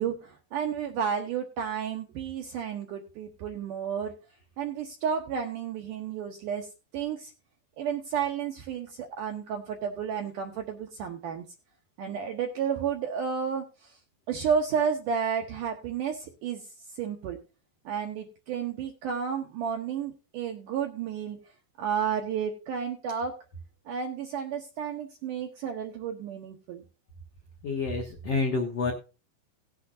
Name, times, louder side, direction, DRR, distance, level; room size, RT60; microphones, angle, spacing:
voice 1, 0.0-4.1 4.6-6.7 6.9-7.3 7.8-11.5 12.0-13.6 14.3-16.6 17.0-17.4 17.9-21.4 21.8-23.4 23.9-26.8, right 7 dB, 80° right, 4 dB, 1.9 m, -31 dB
voice 2, 27.6-28.9, left 4 dB, 80° left, 1 dB, 1.4 m, -28 dB
17.5 x 8.2 x 2.6 m, 0.32 s
omnidirectional pair, 4.9 m